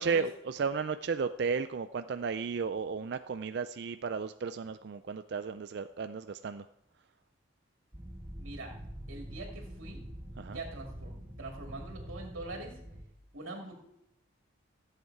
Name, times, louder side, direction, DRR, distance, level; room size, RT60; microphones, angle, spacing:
voice 1, 0.0-6.7 10.4-10.6, right 5 dB, 55° right, 10 dB, 0.3 m, -34 dB
sound 1, 7.9-13.0, equal, 20° right, 1.2 m, -45 dB
voice 2, 8.4-8.7 9.1-10.0 10.5-12.7 13.3-13.7, right 2 dB, 80° right, 0 dB, 2.4 m, -43 dB
15.5 x 8.0 x 4.7 m, 0.80 s
head